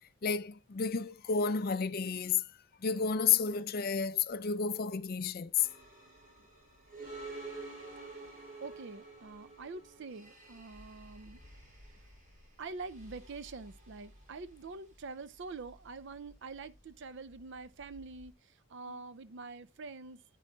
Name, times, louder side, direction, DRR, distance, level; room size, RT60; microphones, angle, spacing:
voice 1, 0.2-2.5 2.8-5.7, left 6 dB, 45° left, 0.4 m, -31 dB
sound 1, 5.6-18.3, right 2 dB, 35° right, 2.9 m, -51 dB
voice 2, 8.6-11.4 12.6-20.2, right 4 dB, 55° right, 0.5 m, -45 dB
9.6 x 9.2 x 2.3 m
head